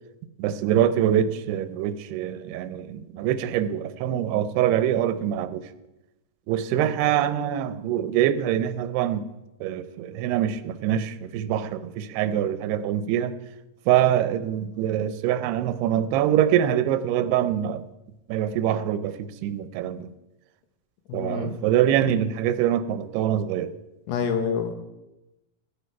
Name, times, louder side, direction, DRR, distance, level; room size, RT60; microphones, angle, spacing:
voice 1, 0.4-5.7 6.5-9.3 9.6-13.4 13.9-17.9 18.3-20.1 21.1-23.7, right 10 dB, 85° right, 2.7 m, -24 dB
voice 2, 21.1-21.6 24.1-24.7, left 6 dB, 90° left, 3.3 m, -27 dB
15.5 x 10.0 x 4.6 m
omnidirectional pair, 4.6 m